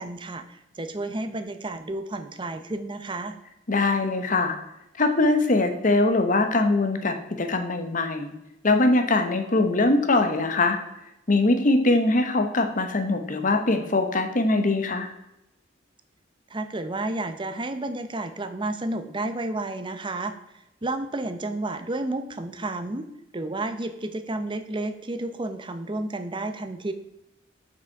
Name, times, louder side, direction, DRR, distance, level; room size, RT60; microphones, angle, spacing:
voice 1, 0.0-3.4 16.5-20.4 20.8-23.1 23.3-26.9, right 2 dB, 25° right, 9 dB, 0.7 m, -31 dB
voice 2, 3.7-4.6 5.0-8.3 8.6-10.8 11.3-15.1, left 2 dB, 45° left, 6 dB, 1.0 m, -22 dB
7.4 x 5.8 x 4.6 m, 0.88 s
head